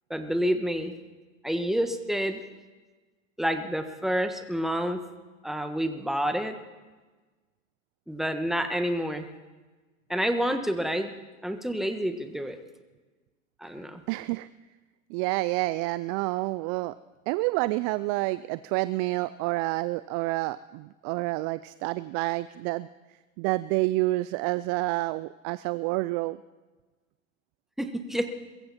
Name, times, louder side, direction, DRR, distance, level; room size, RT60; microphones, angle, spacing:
voice 1, 0.1-0.9 1.4-2.4 3.4-5.0 5.4-6.5 8.1-9.2 10.1-11.1 11.4-12.6 13.6-14.0 27.8-28.3, equal, ahead, 7 dB, 1.5 m, -28 dB
voice 2, 14.1-14.5 15.1-16.9 17.3-22.9 23.4-26.4, right 20 dB, 40° right, 16 dB, 0.4 m, -28 dB
22.5 x 14.5 x 4.3 m, 1.3 s
hypercardioid pair, 95°, 40 cm